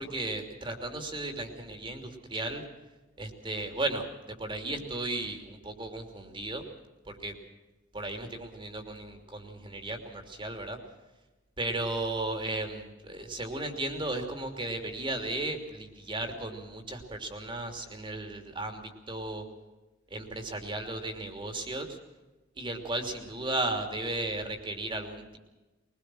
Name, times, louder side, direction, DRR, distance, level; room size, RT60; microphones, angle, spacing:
voice 1, 0.0-2.6 3.2-6.6 7.1-7.3 7.9-10.8 11.6-19.4 20.1-22.0 22.6-25.4, right 2 dB, 25° right, 5 dB, 3.1 m, -35 dB
22.5 x 21.0 x 6.3 m, 1.1 s
head